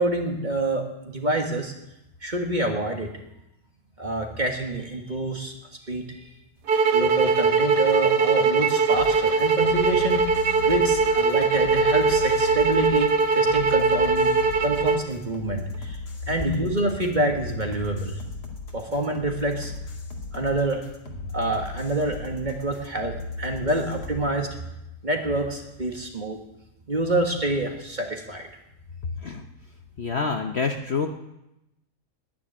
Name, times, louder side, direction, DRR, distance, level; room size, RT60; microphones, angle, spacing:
voice 1, 0.0-1.7 2.2-3.1 4.0-5.5 5.8-6.3 6.9-10.4 10.6-14.3 14.6-16.0 16.3-18.2 18.7-19.7 20.3-20.8 21.3-24.6 25.0-26.4 26.9-28.5, right 2 dB, 30° right, 2 dB, 1.6 m, -27 dB
sound 1, 6.7-15.0, right 4 dB, 85° right, 1.7 m, -21 dB
sound 2, 8.9-24.1, left 3 dB, 75° left, 2.6 m, -37 dB
voice 2, 30.0-31.1, left 5 dB, 50° left, 4 dB, 1.0 m, -27 dB
10.5 x 10.5 x 9.9 m, 0.89 s
omnidirectional pair, 1.7 m